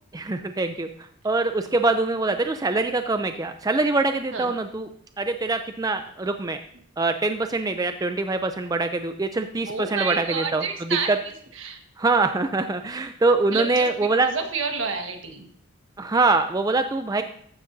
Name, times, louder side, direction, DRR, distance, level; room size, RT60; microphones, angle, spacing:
voice 1, 0.1-0.9 1.2-4.9 5.2-6.6 7.0-11.2 12.0-14.3 16.0-17.2, right 3 dB, 20° right, 7 dB, 0.4 m, -24 dB
voice 2, 9.7-11.8 13.5-15.4, right 5 dB, 70° right, 4 dB, 1.5 m, -30 dB
14.0 x 9.5 x 2.7 m, 0.62 s
head